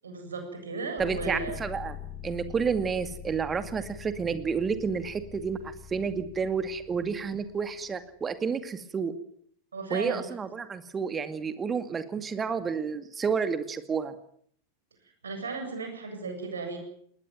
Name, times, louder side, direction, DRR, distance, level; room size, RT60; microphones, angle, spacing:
voice 1, 0.0-1.6 2.4-2.5 9.7-10.2 15.2-16.8, right 4 dB, 70° right, 5 dB, 7.6 m, -35 dB
sound 1, 1.0-7.9, left 9 dB, 20° left, 5.2 m, -44 dB
voice 2, 1.0-2.0 2.2-9.1 9.9-14.1, right 6 dB, 20° right, 11 dB, 2.2 m, -30 dB
20.5 x 20.0 x 9.3 m, 0.64 s
figure-of-eight pair, 90°, 0 cm